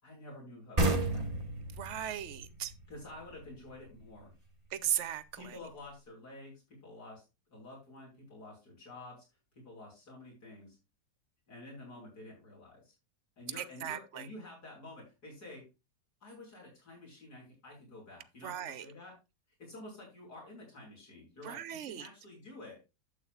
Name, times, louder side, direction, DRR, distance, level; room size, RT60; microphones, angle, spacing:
voice 1, 0.0-1.4 2.9-4.3 5.3-7.2 7.5-9.3 9.6-10.8 11.5-12.9 13.4-15.7 16.2-19.2 19.6-22.8, left 2 dB, 75° left, 6.5 m, -50 dB
sound 1, 0.8-4.2, right 2 dB, 25° right, 1.3 m, -33 dB
voice 2, 1.8-2.7 4.7-5.6 13.6-14.3 18.4-18.9 21.4-22.1, right 10 dB, 55° right, 1.0 m, -37 dB
12.0 x 8.4 x 2.5 m
omnidirectional pair, 1.7 m